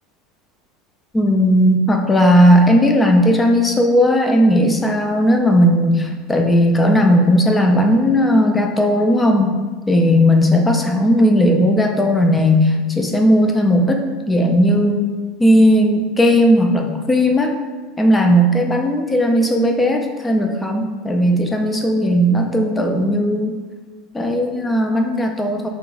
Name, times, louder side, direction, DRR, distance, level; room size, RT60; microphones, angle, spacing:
voice 1, 1.1-9.6 9.9-15.1 15.4-17.5 18.0-23.6 24.1-25.7, equal, 10° left, 3 dB, 0.3 m, -16 dB
5.2 x 2.9 x 2.3 m, 1.4 s
cardioid pair, 165°, 0 cm